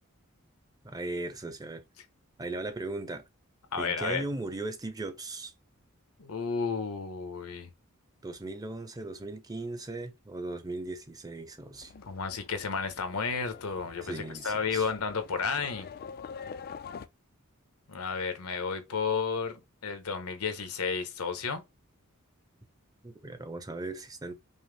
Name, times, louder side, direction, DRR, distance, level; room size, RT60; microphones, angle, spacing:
voice 1, 0.8-1.8 2.4-3.2 3.8-5.5 8.2-11.9 14.0-14.8 23.0-24.3, right 2 dB, 15° right, 0.7 m, -37 dB
voice 2, 3.7-4.2 6.2-7.7 11.9-15.9 17.9-21.6, left 5 dB, 85° left, 1.0 m, -32 dB
Livestock farm animals working animals, 11.7-17.1, left 6 dB, 45° left, 0.4 m, -46 dB
5.5 x 2.0 x 3.3 m
head